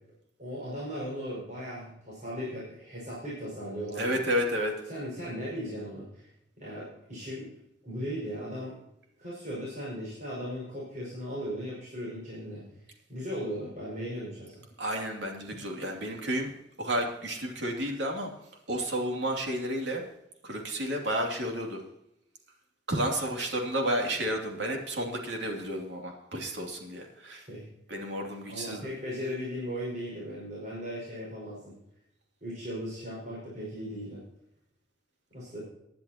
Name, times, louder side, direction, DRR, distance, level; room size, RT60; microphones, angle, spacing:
voice 1, 0.4-4.2 4.9-6.3 6.6-7.5 7.8-8.8 9.2-12.6 13.1-14.6 27.3-27.7 28.5-31.8 32.4-34.2 35.3-35.6, equal, 45° right, -7 dB, 5.6 m, -37 dB
voice 2, 4.0-4.7 14.8-16.5 16.8-18.3 18.7-20.0 20.4-21.8 22.9-27.4 27.9-28.9, equal, 80° right, 1 dB, 2.7 m, -31 dB
19.5 x 10.5 x 2.9 m, 0.83 s
head